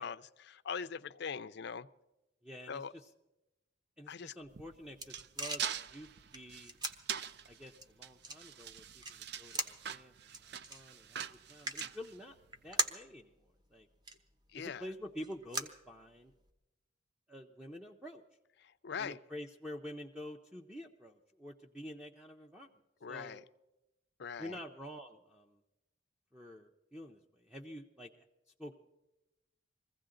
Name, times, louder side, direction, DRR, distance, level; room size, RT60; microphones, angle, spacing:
voice 1, 0.0-1.9 2.7-2.9 4.1-4.3 14.5-14.9 18.6-19.2 23.0-23.4 24.2-24.6, left 6 dB, 60° left, 13 dB, 0.5 m, -42 dB
voice 2, 2.4-3.1 4.0-5.6 5.9-6.8 7.5-11.2 11.5-12.4 12.6-13.3 13.7-13.9 14.6-16.3 17.3-18.2 19.0-22.7 23.1-23.4 24.4-25.6 26.3-28.1 28.6-28.8, equal, 5° right, 2 dB, 0.6 m, -48 dB
sound 1, 4.4-16.5, right 2 dB, 20° right, 1.0 m, -43 dB
sound 2, 4.5-12.7, right 8 dB, 60° right, 0.5 m, -44 dB
22.5 x 15.5 x 3.8 m, 0.98 s
head